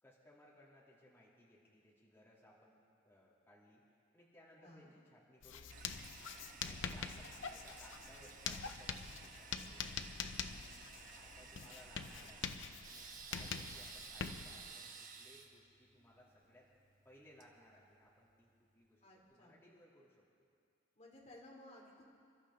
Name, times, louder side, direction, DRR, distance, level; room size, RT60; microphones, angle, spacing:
voice 1, 0.0-3.8 4.1-6.1 6.5-10.1 10.5-10.8 11.2-12.5 12.9-16.7 17.0-20.2, equal, 10° left, -7 dB, 2.9 m, -63 dB
voice 2, 4.6-4.9 6.8-7.1 13.4-13.8 19.0-19.6 21.0-22.0, left 1 dB, 35° left, -2 dB, 2.7 m, -58 dB
Writing, 5.4-14.7, left 6 dB, 65° left, 0.7 m, -45 dB
Toilet flush, 5.7-18.3, right 5 dB, 40° right, 1.1 m, -55 dB
27.0 x 13.0 x 3.7 m, 2.3 s
head